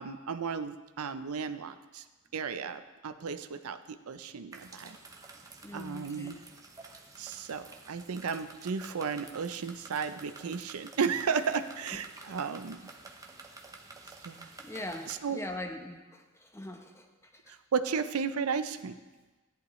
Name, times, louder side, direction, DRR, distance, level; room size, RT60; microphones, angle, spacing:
voice 1, 0.0-2.0 2.3-5.0 5.7-6.4 7.2-12.8 14.2-14.5 15.1-15.4 17.5-19.0, right 6 dB, 90° right, 11 dB, 0.6 m, -34 dB
sound 1, 4.5-15.2, right 3 dB, 15° right, 0.8 m, -50 dB
voice 2, 5.6-6.4 14.6-17.5, left 1 dB, 15° left, 4 dB, 0.8 m, -42 dB
14.0 x 10.5 x 3.2 m, 1.2 s
head